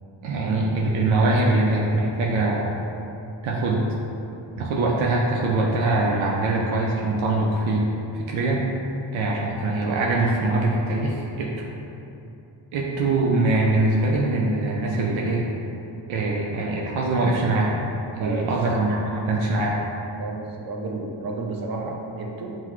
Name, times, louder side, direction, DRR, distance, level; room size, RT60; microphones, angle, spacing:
voice 1, 0.2-2.7 3.4-3.9 4.6-7.9 8.1-8.7 9.1-11.7 12.7-15.4 16.1-17.7 18.2-19.8, right 2 dB, 85° right, -2 dB, 0.6 m, -23 dB
voice 2, 20.2-22.6, right 3 dB, 50° right, 0 dB, 0.7 m, -31 dB
5.7 x 2.2 x 3.0 m, 2.8 s
cardioid pair, 60°, 46 cm